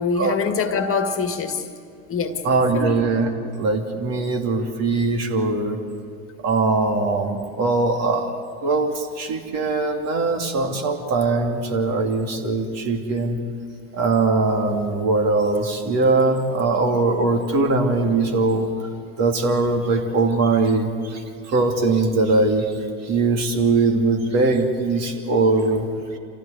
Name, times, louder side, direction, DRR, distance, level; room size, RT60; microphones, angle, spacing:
voice 1, 0.0-1.7 2.1-2.4 2.7-2.9, left 5 dB, 35° left, 7 dB, 1.9 m, -24 dB
voice 2, 2.4-3.3 3.6-5.8 6.4-8.3 8.6-13.4 13.9-18.7 19.2-22.8 23.0-26.2, right 3 dB, 45° right, 3 dB, 2.9 m, -21 dB
26.5 x 15.5 x 8.3 m, 2.3 s
hypercardioid pair, 85°, 38 cm